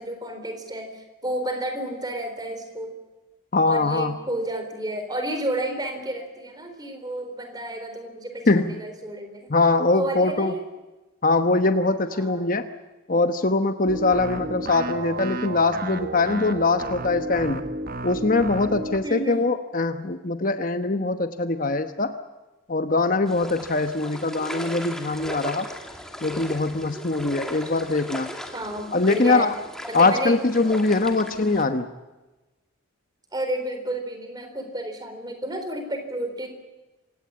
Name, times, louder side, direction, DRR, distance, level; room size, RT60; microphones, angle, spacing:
voice 1, 0.0-2.9 3.7-9.6 9.9-10.6 12.1-12.5 19.0-19.4 28.5-29.5 29.9-30.4 31.0-31.2 33.3-36.5, right 1 dB, 20° right, 6 dB, 4.0 m, -31 dB
voice 2, 3.5-4.1 8.5-8.8 9.5-10.5 11.2-12.7 13.1-17.6 18.0-22.1 22.7-25.7 26.2-28.3 28.9-29.5 29.9-31.9, left 3 dB, 40° left, 8 dB, 1.0 m, -22 dB
sound 1, 13.9-19.1, right 1 dB, 45° right, 1.3 m, -32 dB
sound 2, 23.3-31.6, equal, 5° left, 2.2 m, -37 dB
27.0 x 17.5 x 8.8 m, 1.1 s
head